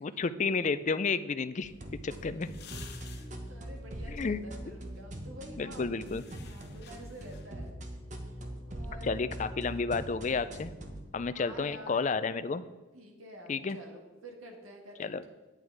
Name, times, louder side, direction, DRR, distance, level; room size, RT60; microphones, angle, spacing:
voice 1, 0.0-1.7 2.0-2.5 4.1-4.4 5.6-6.2 9.0-10.7 11.1-12.6 13.5-13.8 15.0-15.2, left 4 dB, 35° left, 13 dB, 0.4 m, -31 dB
sound 1, 1.5-7.7, left 7 dB, 50° left, 1.0 m, -55 dB
sound 2, 1.6-11.0, right 1 dB, 35° right, 1.0 m, -42 dB
voice 2, 2.7-5.9 6.3-7.7 8.7-9.2 11.4-12.1 12.9-15.1, right 1 dB, 85° right, 2 dB, 1.8 m, -49 dB
9.1 x 8.6 x 4.7 m, 1.2 s
head